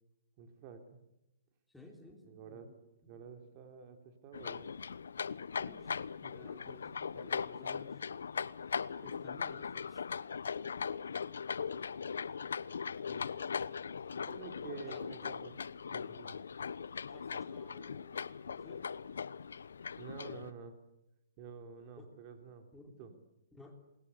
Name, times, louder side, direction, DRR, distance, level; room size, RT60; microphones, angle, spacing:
voice 1, 0.4-1.0 2.2-2.7 3.1-4.7 13.1-13.3 14.1-15.5 15.9-16.4 20.0-20.8 21.4-22.7 23.0-23.1, right 6 dB, 30° right, 6 dB, 3.4 m, -49 dB
voice 2, 1.7-3.2 5.6-8.0 9.0-10.0 14.9-15.3 17.1-18.8 22.0-22.1 22.7-23.1 23.5-23.8, left 2 dB, 5° left, 3 dB, 3.5 m, -56 dB
sound 1, 4.3-20.5, left 6 dB, 90° left, 0.9 m, -40 dB
28.0 x 21.5 x 8.3 m, 0.85 s
hypercardioid pair, 160°, 0 cm